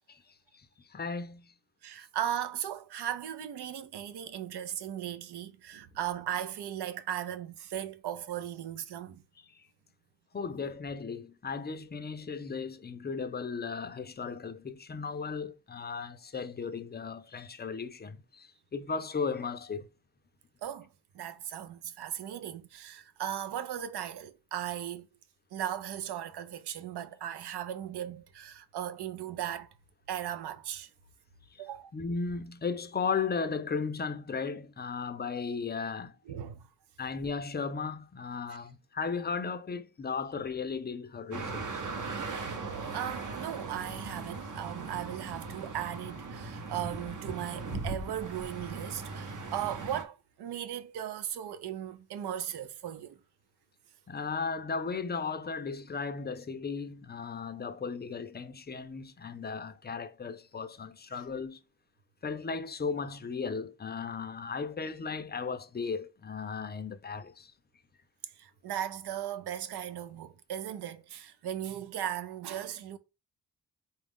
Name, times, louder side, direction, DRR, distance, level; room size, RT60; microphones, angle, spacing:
voice 1, 0.9-1.4 10.3-19.9 31.9-36.1 37.0-41.8 54.1-61.6 62.2-67.5, left 5 dB, 25° left, 0.4 m, -36 dB
voice 2, 1.8-9.2 20.6-20.9 21.1-25.1 25.5-29.7 30.1-30.9 31.6-31.9 36.3-36.7 42.9-53.2 61.1-61.2 68.4-73.0, right 10 dB, 80° right, 0.6 m, -37 dB
sound 1, 41.3-50.0, right 3 dB, 50° right, 0.8 m, -39 dB
4.2 x 2.4 x 3.5 m
cardioid pair, 90°, 39 cm